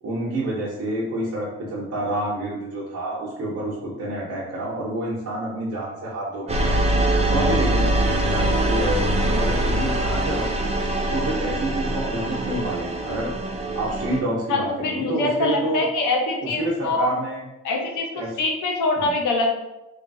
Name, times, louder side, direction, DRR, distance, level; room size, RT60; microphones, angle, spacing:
voice 1, 0.0-6.7 7.0-10.8 11.1-13.3 13.7-15.8 16.4-17.4 18.1-18.3 19.0-19.2, right 1 dB, 55° right, -5 dB, 0.8 m, -28 dB
sound 1, 6.5-14.2, right 1 dB, 20° right, 0.4 m, -23 dB
voice 2, 14.5-17.1 17.6-19.5, left 2 dB, 85° left, 1 dB, 0.7 m, -24 dB
3.1 x 2.3 x 2.6 m, 0.95 s
cardioid pair, 90°, 30 cm